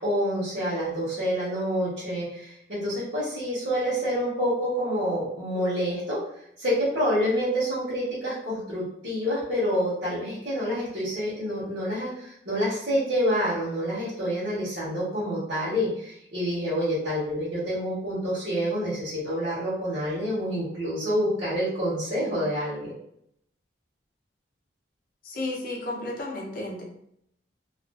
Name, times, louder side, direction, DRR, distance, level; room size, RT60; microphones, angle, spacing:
voice 1, 0.0-6.2 6.6-22.9, equal, 55° right, -11 dB, 0.9 m, -27 dB
voice 2, 25.2-26.8, left 2 dB, 45° left, -1 dB, 0.6 m, -33 dB
2.4 x 2.3 x 2.3 m, 0.73 s
head